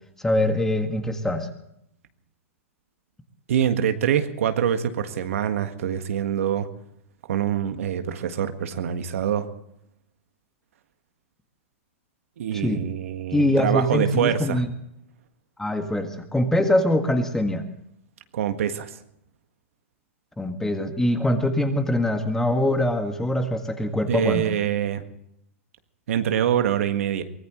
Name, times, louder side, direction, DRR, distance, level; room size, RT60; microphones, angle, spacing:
voice 1, 0.2-1.5 12.6-12.8 13.3-14.7 15.6-17.6 20.4-24.4, left 1 dB, 5° left, 6 dB, 1.7 m, -23 dB
voice 2, 3.5-6.7 7.3-9.5 12.4-14.6 18.3-19.0 24.1-25.0 26.1-27.2, right 9 dB, 70° right, 8 dB, 1.7 m, -25 dB
23.5 x 18.5 x 3.2 m, 0.77 s
hypercardioid pair, 130°, 8 cm